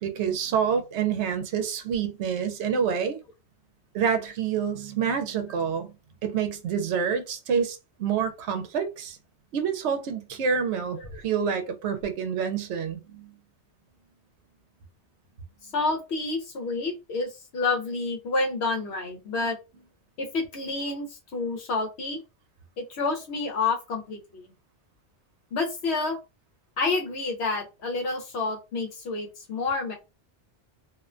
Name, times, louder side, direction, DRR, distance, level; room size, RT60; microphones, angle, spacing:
voice 1, 0.0-3.2 3.9-5.9 6.2-9.2 9.5-13.3, right 7 dB, 75° right, 0.9 m, -27 dB
voice 2, 15.6-19.6 20.2-22.2 22.8-24.5 25.5-26.2 26.8-29.9, left 3 dB, 70° left, 0.9 m, -29 dB
2.4 x 2.1 x 2.4 m
omnidirectional pair, 1.2 m